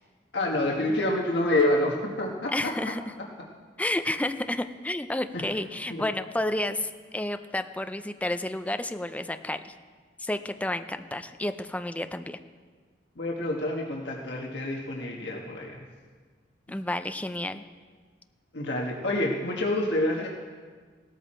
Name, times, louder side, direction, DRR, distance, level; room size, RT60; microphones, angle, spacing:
voice 1, 0.3-2.7 5.3-5.4 5.9-6.0 13.2-15.8 18.5-20.3, left 1 dB, 70° left, -1 dB, 1.5 m, -27 dB
voice 2, 2.5-3.0 3.8-9.6 10.2-12.4 16.7-17.6, left 1 dB, 10° left, 9 dB, 0.5 m, -31 dB
17.0 x 13.0 x 4.4 m, 1.6 s
head